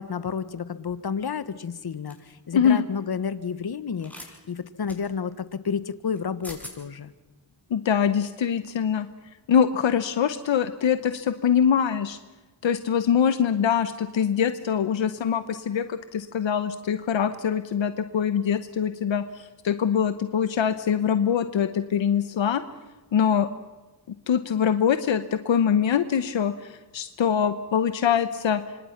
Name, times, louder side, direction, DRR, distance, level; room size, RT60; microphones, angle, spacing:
voice 1, 0.0-7.1, left 6 dB, 55° left, 14 dB, 1.4 m, -31 dB
sound 1, 2.1-2.3 4.0-4.3 4.9-5.0 6.1-6.2 6.4-6.8, left 1 dB, 5° left, 7.3 m, -41 dB
voice 2, 2.5-2.8 7.7-9.1 9.5-12.2 12.6-22.6 23.1-23.5 24.3-28.6, left 8 dB, 80° left, 11 dB, 1.1 m, -23 dB
26.5 x 25.0 x 5.9 m, 1.2 s
cardioid pair, 55°, 45 cm